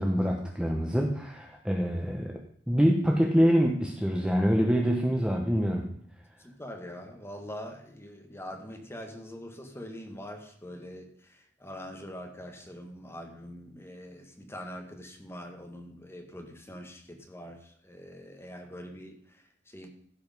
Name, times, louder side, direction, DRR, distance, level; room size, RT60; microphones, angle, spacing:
voice 1, 0.0-2.4 2.7-5.9, equal, 5° right, 0 dB, 1.0 m, -25 dB
voice 2, 6.4-19.9, equal, 15° left, 3 dB, 1.9 m, -44 dB
15.5 x 5.3 x 5.3 m, 0.65 s
head